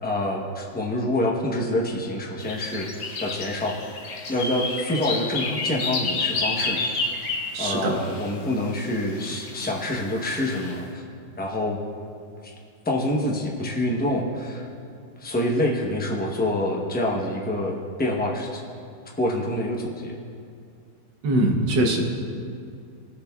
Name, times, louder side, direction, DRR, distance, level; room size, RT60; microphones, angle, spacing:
voice 1, 0.0-2.9 3.2-3.9 4.3-6.9 7.6-11.0 11.4-11.8 12.4-12.5 12.8-14.7 15.2-18.6 19.2-20.2, left 1 dB, 15° left, -2 dB, 0.4 m, -26 dB
sound 1, 2.4-8.3 9.2-9.9 10.4-10.7, left 3 dB, 55° left, 1.1 m, -30 dB
voice 2, 7.5-8.0 21.2-22.0, right 1 dB, 80° right, 2 dB, 1.7 m, -22 dB
18.5 x 6.9 x 2.3 m, 2.4 s
omnidirectional pair, 1.9 m